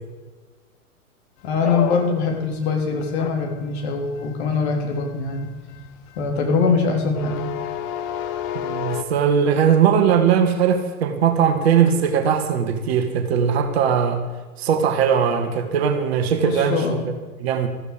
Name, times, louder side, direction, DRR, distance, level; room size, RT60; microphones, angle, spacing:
voice 1, 1.4-5.5 6.2-7.4 16.4-17.0, left 4 dB, 45° left, 2 dB, 3.7 m, -22 dB
sound 1, 1.5-9.0, left 10 dB, 30° left, 1.0 m, -31 dB
voice 2, 8.5-14.2 14.6-17.1 17.4-17.7, right 7 dB, 45° right, 7 dB, 1.8 m, -19 dB
14.5 x 14.0 x 5.1 m, 1.3 s
figure-of-eight pair, 110°, 45 cm